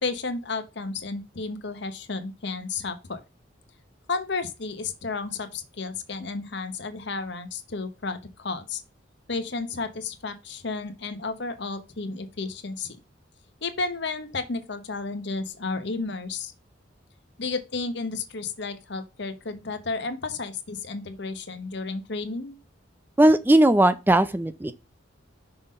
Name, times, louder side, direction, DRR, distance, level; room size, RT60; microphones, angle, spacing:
voice 1, 0.0-3.2 4.1-8.8 9.3-13.0 13.6-16.5 17.4-22.6, left 3 dB, 60° left, 1.1 m, -32 dB
voice 2, 23.2-24.7, right 1 dB, 10° right, 0.4 m, -18 dB
6.0 x 3.8 x 5.3 m
head